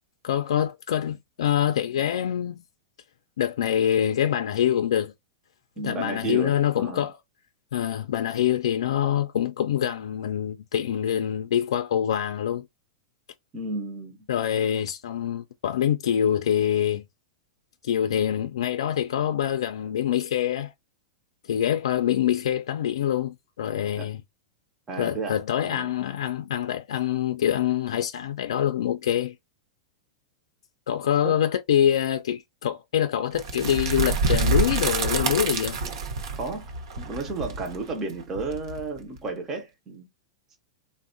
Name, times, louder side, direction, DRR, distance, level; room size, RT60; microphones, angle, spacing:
voice 1, 0.2-2.6 3.4-5.1 5.8-7.2 7.7-12.7 14.3-17.0 17.8-20.7 21.4-24.2 25.0-29.3 30.9-35.8, left 10 dB, 85° left, 0.3 m, -25 dB
voice 2, 5.8-7.1 13.5-14.3 24.0-24.1 24.9-25.4 25.6-25.9 31.2-31.4 36.3-40.1, right 3 dB, 15° right, 0.4 m, -33 dB
sound 1, 33.4-39.2, right 3 dB, 60° right, 0.7 m, -27 dB
3.4 x 2.1 x 2.5 m
supercardioid pair, 175°, 3 cm